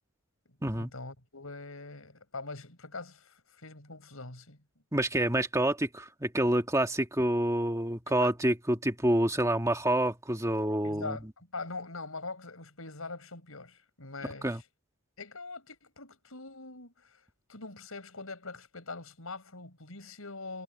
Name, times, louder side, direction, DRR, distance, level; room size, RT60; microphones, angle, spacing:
voice 1, 0.5-4.6 8.1-8.3 10.8-14.6 15.2-17.2 17.5-20.6, left 3 dB, 75° left, 5.4 m, -43 dB
voice 2, 4.9-11.2 14.4-14.6, right 1 dB, 15° right, 2.0 m, -28 dB
head